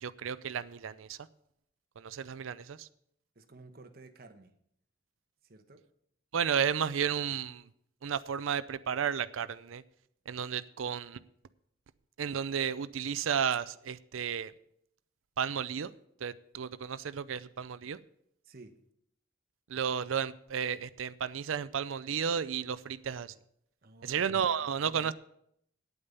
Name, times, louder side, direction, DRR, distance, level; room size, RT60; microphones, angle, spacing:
voice 1, 0.0-1.2 2.0-2.9 6.3-7.7 8.0-9.8 10.3-11.2 12.2-14.5 15.4-15.9 16.2-18.0 19.7-23.3 24.0-25.1, right 7 dB, 85° right, 0.5 m, -33 dB
voice 2, 3.3-4.5 5.4-5.8 18.4-18.7 23.8-24.7, right 3 dB, 50° right, 1.1 m, -54 dB
9.5 x 8.8 x 6.9 m
head